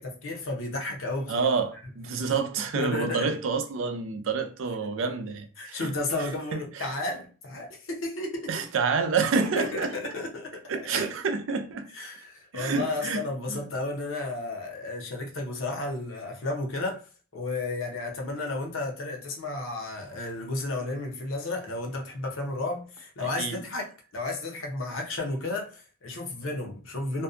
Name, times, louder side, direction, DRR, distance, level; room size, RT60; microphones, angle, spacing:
voice 1, 0.0-1.4 2.7-3.3 5.6-8.5 9.6-10.6 10.9-11.1 11.9-17.0 17.3-23.9 24.1-27.2, left 2 dB, 75° left, 0.7 m, -33 dB
voice 2, 1.3-5.9 6.5-6.9 8.5-10.1 10.7-11.9 12.5-13.7 23.2-23.6, right 5 dB, 70° right, 0.4 m, -28 dB
2.6 x 2.2 x 2.4 m
head